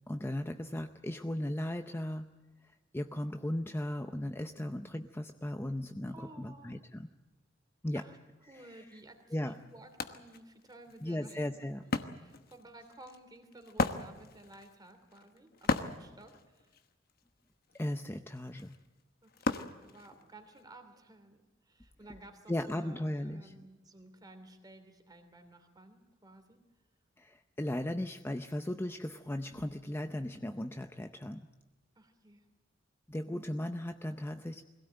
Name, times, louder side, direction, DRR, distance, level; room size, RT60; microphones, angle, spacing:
voice 1, 0.1-2.3 2.6-7.1 7.8-8.0 8.5-8.8 9.3-9.6 11.0-11.8 17.7-18.8 22.5-23.6 27.2-31.5 33.1-34.6, left 1 dB, 10° left, 7 dB, 0.6 m, -37 dB
voice 2, 6.1-6.8 7.9-8.2 8.5-16.8 19.2-26.6 32.0-32.5, right 2 dB, 20° right, 7 dB, 2.8 m, -55 dB
Wood, 8.9-9.0 9.4-20.6, left 3 dB, 50° left, 1.2 m, -38 dB
22.5 x 16.5 x 8.9 m, 1.2 s
head